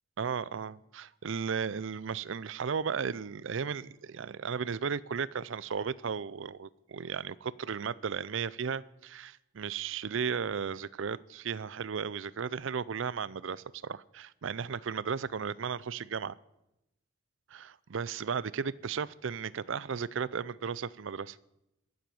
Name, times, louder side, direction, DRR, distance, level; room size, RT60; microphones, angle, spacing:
voice 1, 0.2-16.3 17.5-21.4, right 6 dB, 65° right, 20 dB, 0.5 m, -35 dB
21.5 x 7.8 x 7.0 m, 0.89 s
head